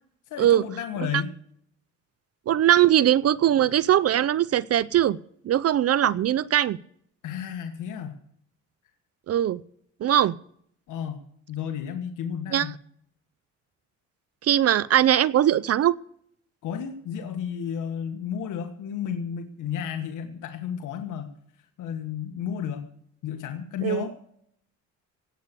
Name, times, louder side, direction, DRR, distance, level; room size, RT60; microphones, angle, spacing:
voice 1, 0.3-1.3 7.2-8.2 10.9-11.2 11.5-12.7 16.6-21.3 21.8-22.9 23.2-24.1, left 8 dB, 85° left, 6 dB, 1.5 m, -32 dB
voice 2, 2.5-5.2 5.4-6.8 9.3-9.6 10.0-10.3 12.5-12.7 14.4-16.0 23.8-24.0, right 11 dB, 55° right, 20 dB, 0.5 m, -20 dB
17.5 x 8.2 x 6.8 m, 0.67 s
cardioid pair, 90°, 30 cm